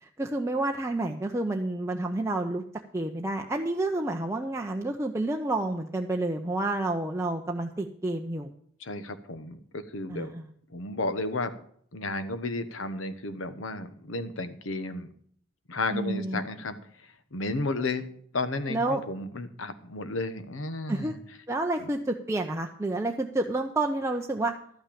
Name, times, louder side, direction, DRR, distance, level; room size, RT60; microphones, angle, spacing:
voice 1, 0.0-2.6 2.9-8.5 10.1-10.4 15.9-16.4 18.7-19.0 20.9-21.1 21.5-24.5, right 2 dB, 15° right, 2 dB, 0.6 m, -29 dB
voice 2, 8.8-10.3 10.7-11.5 11.9-15.1 15.7-16.8 17.3-18.1 18.3-21.2 21.8-21.9, left 2 dB, 70° left, 10 dB, 1.0 m, -33 dB
12.0 x 6.1 x 8.4 m, 0.62 s
head